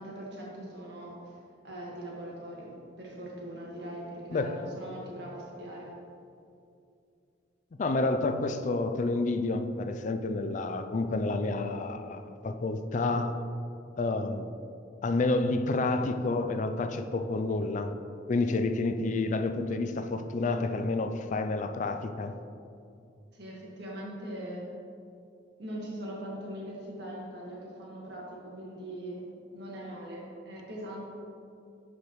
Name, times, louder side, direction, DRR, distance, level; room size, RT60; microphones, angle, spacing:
voice 1, 0.0-1.4 1.6-5.9 23.3-24.7 25.6-29.2 29.5-31.1, right 1 dB, 65° right, 1.7 m, -41 dB
voice 2, 4.3-4.7 7.7-13.4 14.0-14.6 15.0-17.9 18.3-22.4, left 2 dB, 40° left, 0.4 m, -29 dB
10.5 x 4.9 x 3.1 m
head